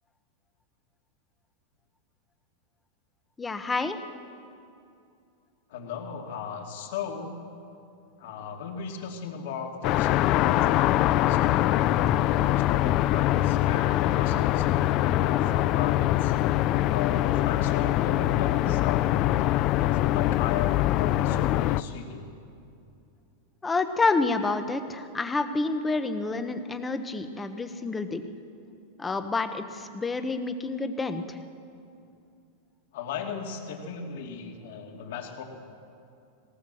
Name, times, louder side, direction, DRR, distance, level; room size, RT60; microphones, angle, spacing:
voice 1, 3.4-4.0 23.6-28.2 29.0-31.4, left 3 dB, 10° left, 9 dB, 0.8 m, -28 dB
voice 2, 5.7-7.4 8.2-16.3 16.9-22.3 32.9-35.4, left 6 dB, 60° left, 2 dB, 2.6 m, -37 dB
sound 1, 9.8-21.8, left 14 dB, 30° left, 0.4 m, -23 dB
20.0 x 18.0 x 7.7 m, 2.6 s
supercardioid pair, 175°, 0 cm